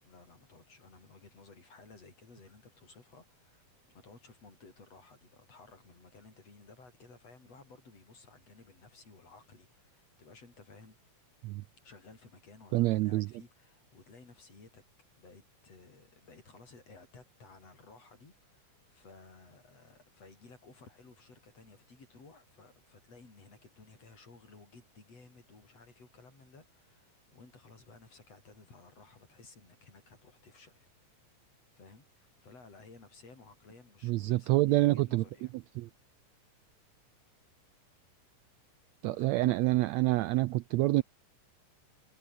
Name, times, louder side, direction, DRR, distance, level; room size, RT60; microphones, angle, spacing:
voice 1, 0.0-11.0 11.8-14.8 15.2-30.9 31.7-35.5 39.0-40.0, left 3 dB, 50° left, 6.9 m, -56 dB
voice 2, 12.7-13.3 34.0-35.2 35.8-35.9 39.0-41.0, right 18 dB, 85° right, 1.6 m, -27 dB
omnidirectional pair, 3.7 m